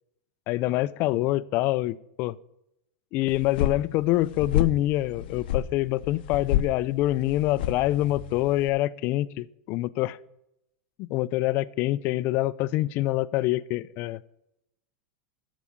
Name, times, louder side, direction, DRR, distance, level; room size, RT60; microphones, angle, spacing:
voice 1, 0.5-2.4 3.1-10.2 11.0-14.2, left 16 dB, 35° left, 17 dB, 0.4 m, -26 dB
sound 1, 3.3-8.7, left 11 dB, 70° left, 0.7 m, -30 dB
13.5 x 5.0 x 7.0 m, 0.81 s
supercardioid pair, 155°, 6 cm